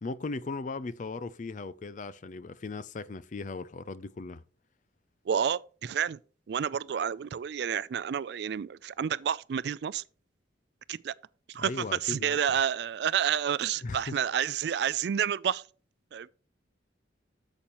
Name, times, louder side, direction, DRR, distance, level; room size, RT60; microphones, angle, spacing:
voice 1, 0.0-4.4 11.6-12.4 13.8-14.1, left 3 dB, 40° left, 0.4 m, -37 dB
voice 2, 5.3-6.2 6.5-10.0 10.9-11.1 11.5-15.6 16.1-16.3, right 8 dB, 60° right, 0.3 m, -29 dB
8.8 x 7.0 x 3.0 m
head